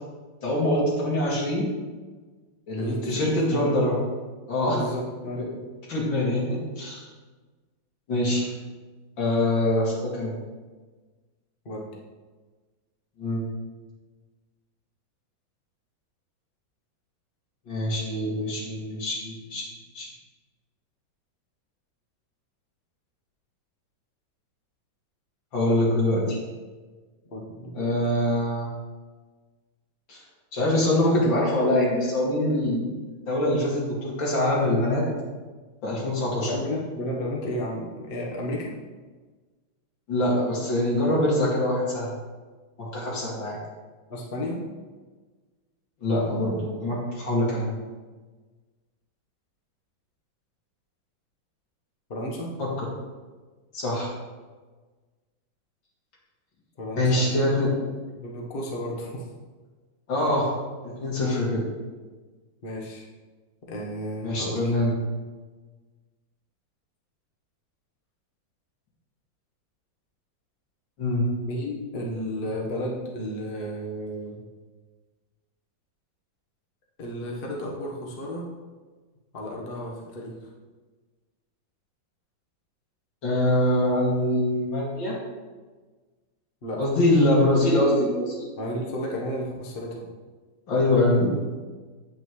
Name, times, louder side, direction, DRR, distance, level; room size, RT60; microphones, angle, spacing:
voice 1, 0.4-1.7 2.7-4.0 4.5-4.8 5.3-5.4 5.9-7.1 8.1-8.5 9.2-10.4 13.2-13.4 17.7-19.7 19.9-20.1 25.5-26.4 27.7-28.7 30.1-30.2 30.5-32.9 33.3-35.1 35.8-36.5 40.1-42.1 42.8-43.6 46.0-47.7 52.6-52.9 53.7-54.1 57.0-57.7 60.1-60.6 60.8-61.6 64.2-64.9 71.0-71.2 83.2-85.2 86.8-88.5 90.7-91.4, left 1 dB, 70° left, -4 dB, 3.0 m, -24 dB
voice 2, 2.8-3.8 4.6-5.5 11.6-11.9 27.3-27.9 36.4-38.7 44.1-44.6 52.1-52.5 56.8-57.5 58.1-59.3 61.2-61.4 62.6-63.1 63.7-64.7 71.4-74.4 77.0-78.5 79.3-80.3 86.6-86.8 88.6-90.1, equal, 35° left, -2 dB, 1.2 m, -33 dB
8.7 x 8.4 x 3.2 m, 1.3 s
omnidirectional pair, 2.1 m